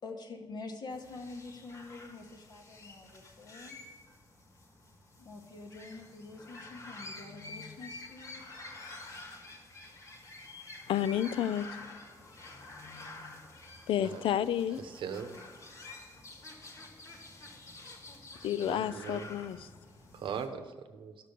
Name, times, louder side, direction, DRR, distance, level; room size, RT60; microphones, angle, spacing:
voice 1, 0.0-3.8 5.1-8.4, left 3 dB, 55° left, 2 dB, 1.1 m, -46 dB
sound 1, 0.9-20.5, left 2 dB, 35° left, 1.4 m, -49 dB
voice 2, 10.9-11.7 13.9-14.8 18.4-19.7, left 10 dB, 85° left, 15 dB, 0.4 m, -30 dB
voice 3, 14.8-15.4 18.7-19.3 20.1-20.6 20.9-21.2, right 7 dB, 70° right, 9 dB, 0.8 m, -39 dB
12.0 x 6.7 x 5.3 m, 1.3 s
wide cardioid pair, 165°, 9 cm